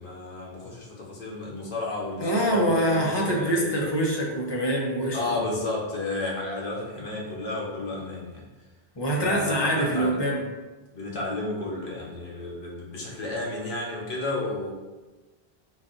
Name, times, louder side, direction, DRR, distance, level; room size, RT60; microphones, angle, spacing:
voice 1, 0.0-3.9 5.1-8.4 9.2-10.2 10.9-14.7, left 2 dB, 80° left, -3 dB, 1.2 m, -32 dB
voice 2, 2.2-5.5 9.0-10.4, right 1 dB, 30° left, -2 dB, 0.6 m, -25 dB
4.0 x 2.4 x 3.8 m, 1.2 s
omnidirectional pair, 1.1 m